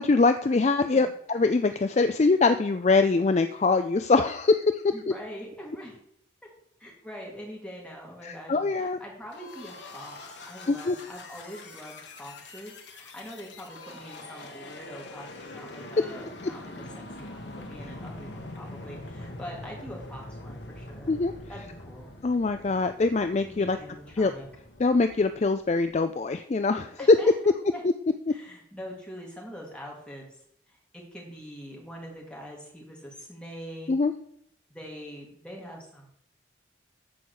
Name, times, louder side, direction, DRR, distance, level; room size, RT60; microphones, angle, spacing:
voice 1, 0.0-4.6 8.2-9.0 10.7-11.0 21.1-21.3 22.2-23.8 24.2-24.3 24.8-27.2 33.9-34.1, left 3 dB, 35° left, 9 dB, 0.4 m, -23 dB
voice 2, 4.9-6.0 6.8-10.2 10.5-21.2 21.5-22.1 23.5-24.5 27.0-27.8 28.3-30.2 30.7-33.9 34.7-36.1, equal, 5° left, -2 dB, 2.7 m, -43 dB
sound 1, 9.3-25.9, left 2 dB, 65° left, 1.6 m, -44 dB
14.0 x 4.7 x 6.4 m, 0.72 s
head